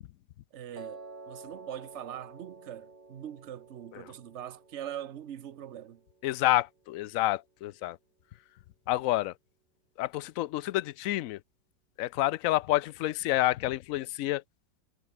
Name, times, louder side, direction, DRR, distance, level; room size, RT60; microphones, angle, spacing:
voice 1, 0.5-6.0, right 10 dB, 50° right, 1.0 m, -42 dB
Piano, 0.8-6.9, right 3 dB, 80° right, 5.1 m, -51 dB
voice 2, 6.2-8.0 8.9-9.3 10.0-11.4 12.0-14.4, left 15 dB, 75° left, 0.8 m, -28 dB
omnidirectional pair, 1.9 m